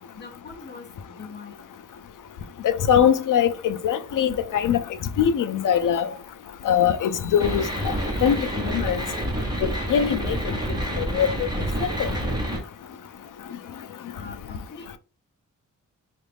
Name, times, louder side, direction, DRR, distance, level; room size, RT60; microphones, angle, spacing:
voice 1, 0.1-0.9 1.2-1.6 6.0-6.2 14.1-15.0, left 4 dB, 35° left, 0.9 m, -42 dB
voice 2, 2.6-4.8 5.2-6.1 6.6-7.9 8.2-8.4 8.6-9.0 9.6-10.5 11.0-11.5 11.8-12.1, left 8 dB, 80° left, 0.5 m, -22 dB
sound 1, 7.4-12.6, right 1 dB, 15° right, 1.0 m, -28 dB
4.0 x 2.5 x 3.3 m
wide cardioid pair, 155°, 31 cm